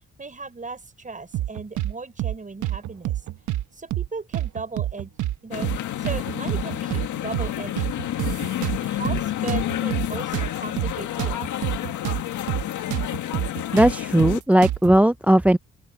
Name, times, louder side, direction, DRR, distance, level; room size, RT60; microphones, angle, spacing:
voice 1, 0.2-3.2 3.7-5.1 5.4-5.7 6.0-7.9 8.6-11.6, right 3 dB, 25° right, 6.2 m, -37 dB
sound 1, 1.3-1.9 2.2-2.4 2.6-3.6 3.9-4.1 4.3-5.4 5.6-5.8 6.0-7.1 7.3-7.5 7.8-9.2 9.5-12.2 12.5-12.6 12.9-14.9, right 14 dB, 80° right, 1.1 m, -27 dB
sound 2, 5.5-14.4, left 12 dB, 75° left, 2.0 m, -29 dB
voice 2, 13.7-15.6, right 1 dB, 5° right, 0.5 m, -17 dB
open air
cardioid pair, 90°, 30 cm